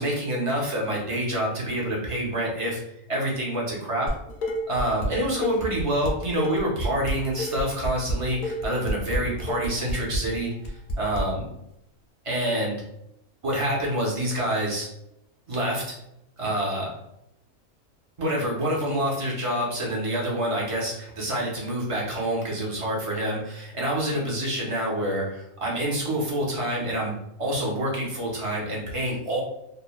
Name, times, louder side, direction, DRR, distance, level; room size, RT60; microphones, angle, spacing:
voice 1, 0.0-2.8 3.1-4.1 4.7-11.4 12.2-12.8 13.4-14.9 15.5-16.0 16.4-16.9 18.2-29.4, right 1 dB, 40° right, -3 dB, 0.5 m, -27 dB
Dishes pots and pans, 4.1-5.1 5.4-11.2, equal, 60° left, 0.5 m, -29 dB
3.1 x 2.1 x 2.3 m, 0.80 s
omnidirectional pair, 1.4 m